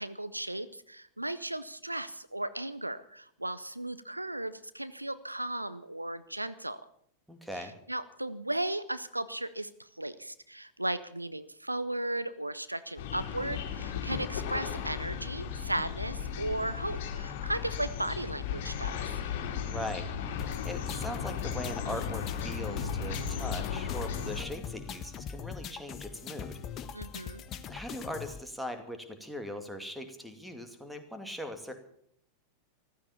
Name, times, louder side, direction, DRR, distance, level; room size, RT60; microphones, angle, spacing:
voice 1, 0.0-6.8 7.6-19.1 26.9-27.4, right 1 dB, 85° right, 14 dB, 0.7 m, -36 dB
voice 2, 7.3-7.7 19.6-20.1 20.6-26.6 27.7-31.7, equal, ahead, 6 dB, 2.3 m, -40 dB
sound 1, 13.0-24.4, left 7 dB, 50° left, 2.7 m, -35 dB
sound 2, 20.4-28.4, left 7 dB, 30° left, 1.1 m, -42 dB
15.0 x 13.5 x 7.1 m, 0.67 s
figure-of-eight pair, 90°, 0 cm